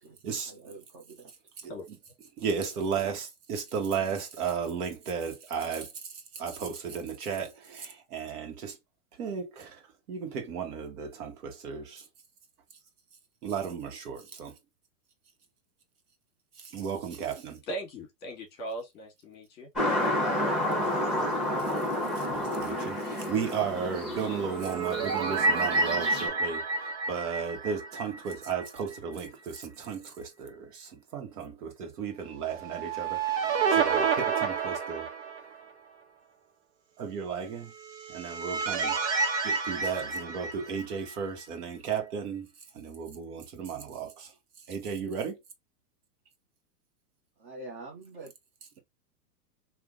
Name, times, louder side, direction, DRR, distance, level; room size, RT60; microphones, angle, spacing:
voice 1, 0.5-1.3 47.4-48.3, right 2 dB, 20° right, 0.5 m, -45 dB
voice 2, 2.4-5.9 6.3-8.8 9.2-9.8 10.1-12.0 13.4-14.5 16.6-17.6 22.1-35.1 37.0-37.7 38.1-39.0 39.4-42.5 42.7-44.3 44.7-45.4, right 6 dB, 65° right, 1.5 m, -34 dB
voice 3, 17.7-19.7, right 1 dB, 20° left, 1.5 m, -39 dB
sound 1, 19.8-26.3, left 1 dB, ahead, 1.1 m, -30 dB
sound 2, 24.4-28.7 29.0-29.1 32.6-35.7 37.7-41.1, right 4 dB, 80° right, 1.3 m, -29 dB
3.4 x 2.7 x 2.5 m
hypercardioid pair, 155°, 50 cm